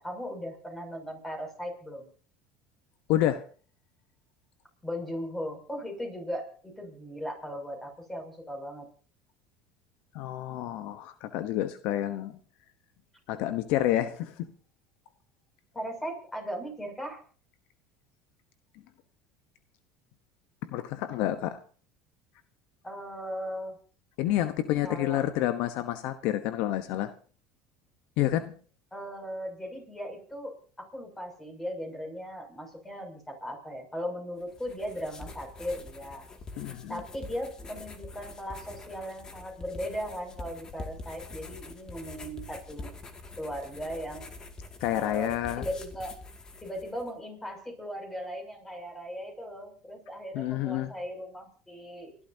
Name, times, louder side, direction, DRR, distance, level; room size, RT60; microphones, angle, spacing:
voice 1, 0.0-2.1 4.8-8.8 15.7-17.2 22.8-23.8 24.8-25.2 28.9-36.3 36.9-42.9 43.4-44.3 44.9-46.1 46.6-52.2, equal, 10° left, 3 dB, 6.8 m, -38 dB
voice 2, 3.1-3.5 10.1-12.4 13.3-14.5 20.6-21.6 24.2-27.1 28.2-28.5 36.6-37.0 44.8-45.6 50.3-50.9, left 13 dB, 70° left, 11 dB, 1.0 m, -29 dB
sound 1, 34.4-47.1, left 3 dB, 30° left, 2.3 m, -45 dB
30.0 x 12.5 x 2.8 m, 0.40 s
supercardioid pair, 100°, 3 cm